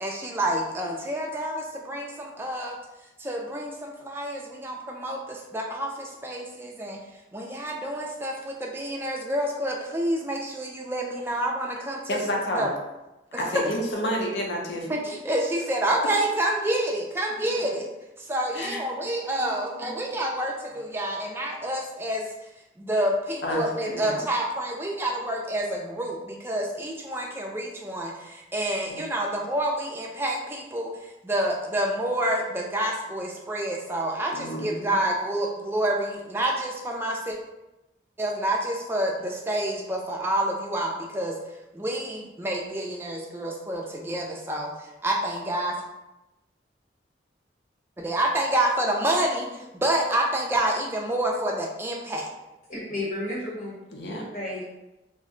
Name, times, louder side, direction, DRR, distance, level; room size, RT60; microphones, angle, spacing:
voice 1, 0.0-2.7 3.2-7.0 7.3-12.2 12.5-12.7 13.3-13.4 14.9-17.9 18.3-22.3 22.8-30.9 31.2-37.4 38.2-41.4 41.7-44.7 45.0-45.8 48.0-52.3, right 1 dB, 15° right, -1 dB, 0.3 m, -28 dB
voice 2, 12.1-12.7 13.4-15.0 17.7-17.8 18.5-18.8 19.4-19.9 23.4-24.2 28.8-29.0 34.3-35.0 53.9-54.3, equal, 65° left, -1 dB, 0.6 m, -30 dB
voice 3, 52.7-53.7 54.3-54.6, left 1 dB, 40° left, -7 dB, 0.9 m, -32 dB
2.5 x 2.1 x 3.7 m, 0.98 s
head